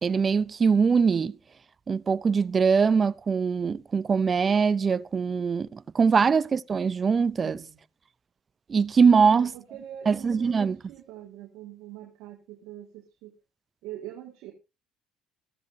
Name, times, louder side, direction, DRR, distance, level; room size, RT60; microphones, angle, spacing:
voice 1, 0.0-1.3 1.9-7.6 8.7-9.5 10.1-10.8, right 5 dB, 35° right, 0.5 m, -22 dB
voice 2, 7.4-7.8 9.1-13.3 13.8-14.5, right 12 dB, 75° right, 1.8 m, -43 dB
14.0 x 14.0 x 2.7 m
supercardioid pair, 90°, 0 cm